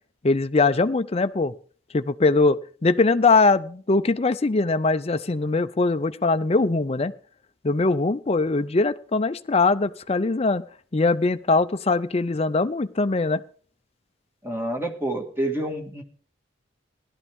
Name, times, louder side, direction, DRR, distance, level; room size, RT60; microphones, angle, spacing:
voice 1, 0.2-1.5 1.9-7.1 7.6-10.6 10.9-13.4, left 3 dB, 30° left, 12 dB, 0.5 m, -21 dB
voice 2, 14.4-16.0, right 1 dB, 10° right, 3 dB, 1.8 m, -28 dB
16.5 x 12.0 x 3.6 m, 0.43 s
head